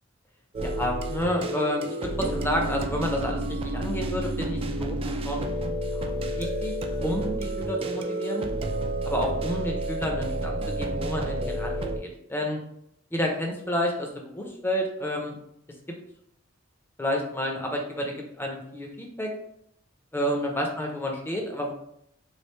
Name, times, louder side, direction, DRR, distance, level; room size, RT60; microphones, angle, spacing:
sound 1, 0.5-12.0, right 1 dB, 30° right, 0.3 m, -30 dB
voice 1, 0.6-5.6 5.9-6.7 7.0-8.4 9.0-12.6 13.1-15.4 17.0-19.3 20.1-21.7, left 1 dB, 10° left, 1 dB, 0.6 m, -30 dB
3.2 x 2.4 x 3.1 m, 0.74 s
head